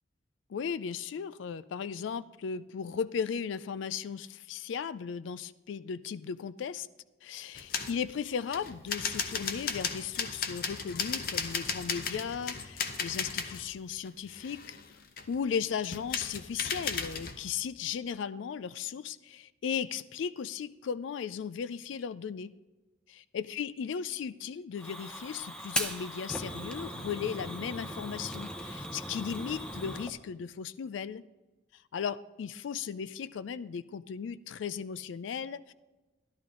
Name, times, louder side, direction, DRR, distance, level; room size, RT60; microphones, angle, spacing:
voice 1, 0.5-6.9 7.2-14.8 15.3-22.5 23.1-31.2 31.9-35.7, left 7 dB, 80° left, 16 dB, 0.4 m, -36 dB
sound 1, 7.5-8.0 8.5-13.7 14.1-15.4 15.8-17.4, left 6 dB, 50° left, 0.7 m, -35 dB
Fire, 24.8-30.1, equal, 5° left, 0.7 m, -38 dB
12.5 x 11.5 x 3.8 m, 1.1 s
head